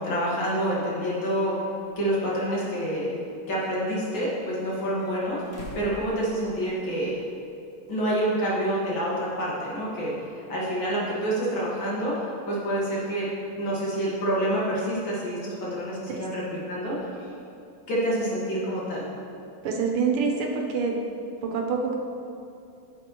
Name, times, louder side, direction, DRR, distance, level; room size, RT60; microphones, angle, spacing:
voice 1, 0.0-1.5 2.0-3.1 3.5-5.4 5.8-7.2 7.9-13.3 13.6-17.3 17.9-19.0, right 1 dB, 65° left, -6 dB, 2.4 m, -27 dB
sound 1, 1.8-1.9 2.8-3.7 4.6-6.9 7.2-7.3 8.9-9.0, left 1 dB, 45° left, 0.8 m, -45 dB
voice 2, 19.6-21.0 21.4-22.0, right 5 dB, 80° right, 1 dB, 1.7 m, -26 dB
9.4 x 7.5 x 3.0 m, 2.6 s
omnidirectional pair, 2.4 m